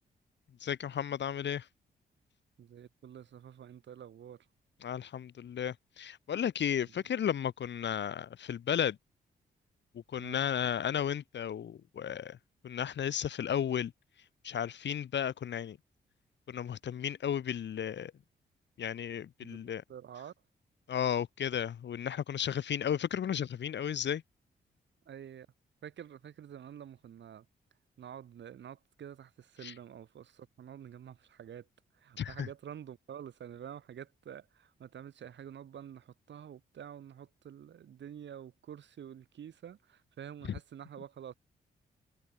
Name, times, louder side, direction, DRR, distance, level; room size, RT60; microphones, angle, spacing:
voice 1, 0.6-1.7 4.8-9.0 9.9-12.4 12.6-13.9 14.4-15.8 16.5-18.1 18.8-19.8 20.9-24.2 29.6-29.7 32.2-32.5, left 9 dB, 70° left, 3.7 m, -34 dB
voice 2, 2.6-4.5 6.8-7.0 10.2-10.4 19.4-20.3 25.0-25.5 25.8-27.5 28.0-31.7 31.9-41.3, right 9 dB, 75° right, 7.9 m, -48 dB
supercardioid pair, 55°, 19 cm